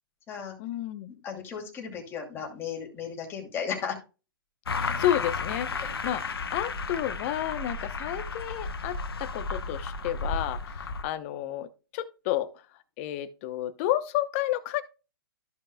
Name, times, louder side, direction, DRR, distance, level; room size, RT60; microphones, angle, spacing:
voice 1, 0.6-1.1 4.8-11.7 11.9-12.5 13.0-14.8, left 13 dB, 35° left, 0.8 m, -31 dB
voice 2, 1.2-4.0, left 7 dB, 20° left, 2.5 m, -35 dB
sound 1, 4.7-11.0, left 4 dB, 85° left, 1.0 m, -33 dB
14.0 x 5.4 x 2.2 m
hypercardioid pair, 140°, 12 cm